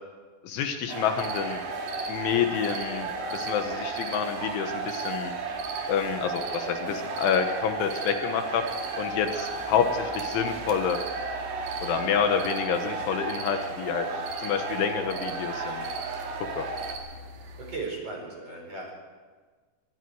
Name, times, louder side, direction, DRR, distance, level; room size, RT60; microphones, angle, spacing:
voice 1, 0.4-1.6 2.1-5.3 5.9-8.6 9.0-11.0 11.8-14.1 14.4-15.8 16.5-16.7, left 7 dB, 75° left, 6 dB, 3.4 m, -28 dB
sound 1, 0.9-16.9, right 3 dB, 80° right, 5.0 m, -34 dB
sound 2, 1.1-17.8, right 5 dB, 55° right, 3.5 m, -43 dB
voice 2, 17.6-18.9, right 3 dB, 30° right, 1 dB, 5.0 m, -36 dB
25.5 x 22.0 x 4.8 m, 1.4 s
omnidirectional pair, 5.8 m